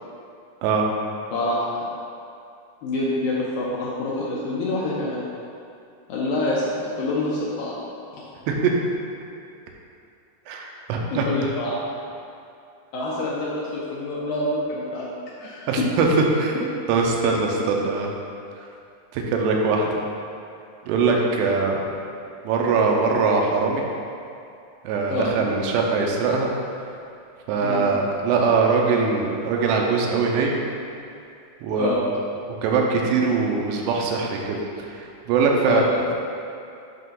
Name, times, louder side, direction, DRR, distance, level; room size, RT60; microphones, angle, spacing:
voice 1, 1.3-1.8 2.8-5.2 6.1-7.8 8.1-8.2 11.1-11.8 12.9-15.1 15.4-15.9 21.1-21.3 25.1-25.3 27.6-27.8 31.7-32.0 35.6-35.9, left 2 dB, 75° left, -6 dB, 2.2 m, -26 dB
voice 2, 10.5-11.3 15.7-16.5 16.9-18.1 19.1-19.9 20.9-21.9 22.4-23.8 24.8-26.5 27.5-30.6 31.6-31.9 32.6-35.8, right 4 dB, 90° right, 0 dB, 2.9 m, -22 dB
8.0 x 5.5 x 3.8 m, 2.5 s
omnidirectional pair, 4.9 m